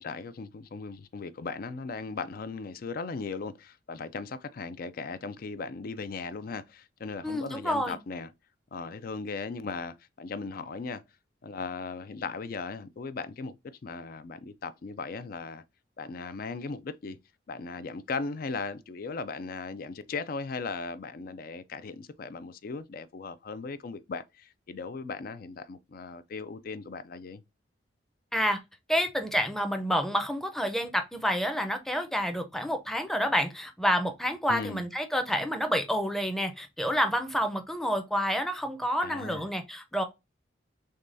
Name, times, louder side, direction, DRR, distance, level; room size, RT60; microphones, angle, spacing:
voice 1, 0.0-8.3 8.7-11.0 11.4-15.6 16.0-17.2 17.5-27.4 34.5-34.8 39.0-39.5, left 4 dB, 50° left, 0.4 m, -37 dB
voice 2, 7.2-8.0 28.3-28.6 28.9-40.0, equal, ahead, 0.6 m, -28 dB
6.3 x 2.3 x 2.6 m
head